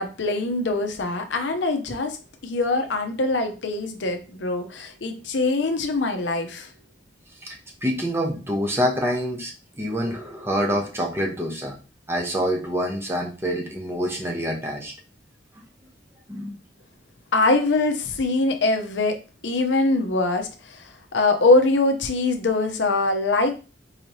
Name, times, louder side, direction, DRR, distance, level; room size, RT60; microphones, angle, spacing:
voice 1, 0.0-2.2 2.4-6.7 17.3-19.2 19.4-20.8 21.1-23.5, left 2 dB, 80° left, 7 dB, 0.7 m, -23 dB
voice 2, 7.4-11.7 12.1-14.9 16.3-16.5, equal, 15° right, 0 dB, 0.9 m, -26 dB
4.7 x 3.1 x 2.7 m, 0.33 s
head